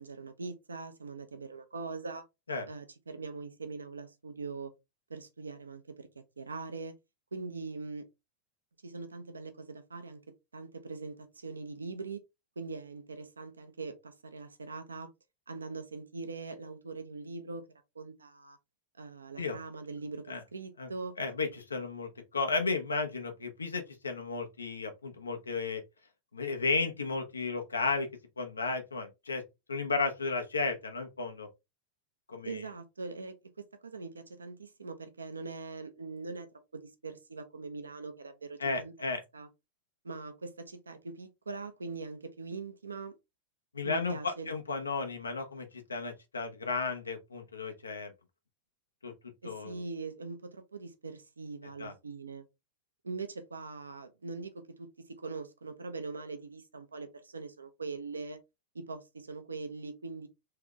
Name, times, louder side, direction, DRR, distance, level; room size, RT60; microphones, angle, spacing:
voice 1, 0.0-2.2 2.7-4.7 5.1-6.1 6.4-7.0 7.3-8.1 8.8-10.2 10.5-12.2 12.6-15.1 15.5-17.7 17.9-18.6 19.0-21.1 32.4-36.5 36.7-39.5 40.0-43.2 43.8-44.5 49.4-52.4 53.0-58.4 58.7-60.3, right 4 dB, 75° right, 0.8 m, -42 dB
voice 2, 21.2-25.8 26.3-28.1 28.4-29.4 29.7-31.5 32.3-32.6 38.6-39.2 43.7-48.1 49.0-49.1 49.4-49.8 51.8-51.9, left 4 dB, 75° left, 1.0 m, -33 dB
3.4 x 3.4 x 3.8 m
figure-of-eight pair, 90°, 0 cm